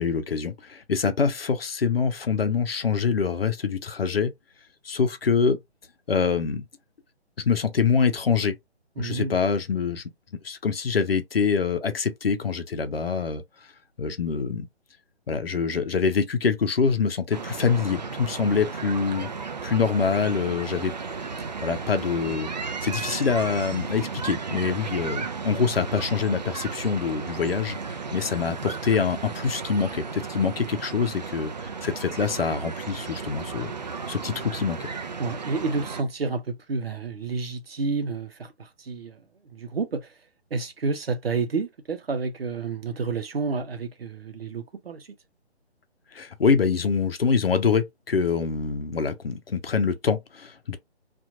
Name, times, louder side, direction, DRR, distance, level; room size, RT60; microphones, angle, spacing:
voice 1, 0.0-4.3 4.8-5.6 6.1-6.6 7.4-8.6 9.0-10.0 10.4-13.4 14.0-14.7 15.3-19.3 19.6-20.9 21.6-22.5 22.8-33.7 34.1-34.9 46.1-50.8, left 5 dB, 60° left, 0.7 m, -25 dB
voice 2, 9.0-9.4 19.1-19.2 35.2-39.2 39.5-40.1 40.5-45.1, right 4 dB, 60° right, 0.8 m, -30 dB
sound 1, 17.3-36.0, right 5 dB, 40° right, 0.4 m, -34 dB
2.8 x 2.5 x 2.5 m
figure-of-eight pair, 145°, 33 cm